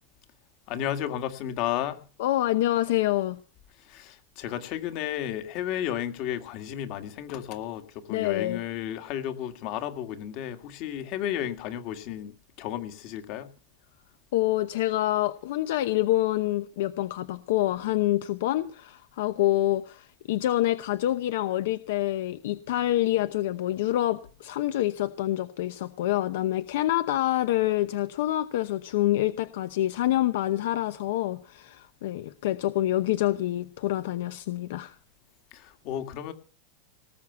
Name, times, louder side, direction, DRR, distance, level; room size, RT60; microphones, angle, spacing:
voice 1, 0.7-2.1 3.8-13.5 35.5-36.3, left 11 dB, 45° left, 2.0 m, -33 dB
voice 2, 2.2-3.4 8.1-8.6 14.3-35.0, left 14 dB, 75° left, 0.8 m, -26 dB
19.0 x 6.9 x 8.1 m
supercardioid pair, 150°, 0 cm